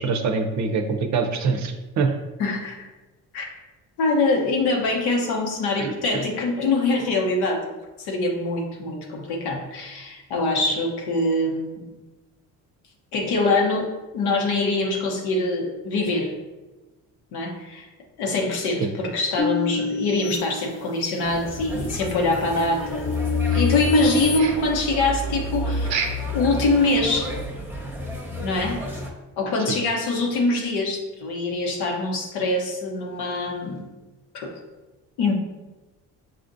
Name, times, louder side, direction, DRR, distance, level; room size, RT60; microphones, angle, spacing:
voice 1, 0.0-2.2 5.8-6.3 18.8-18.9 29.7-29.8, right 4 dB, 45° right, 6 dB, 0.6 m, -24 dB
voice 2, 2.4-2.9 3.3-3.5 4.0-7.7 8.0-11.8 13.1-13.9 14.1-16.3 17.3-17.9 18.2-23.2 23.5-27.3 28.4-28.8 29.4-33.8 34.3-34.5 35.2-35.3, left 2 dB, 80° left, 0 dB, 0.9 m, -24 dB
sound 1, 19.4-21.3 21.9-24.4, left 3 dB, 30° left, 0.7 m, -28 dB
sound 2, 21.2-29.1, left 2 dB, 5° right, 0.9 m, -30 dB
sound 3, 23.4-24.1 24.3-24.8 25.8-26.3 26.7-26.8 27.2-27.3 27.8-27.9, right 6 dB, 90° right, 0.6 m, -31 dB
5.8 x 2.5 x 2.6 m, 1.1 s
supercardioid pair, 65°, 38 cm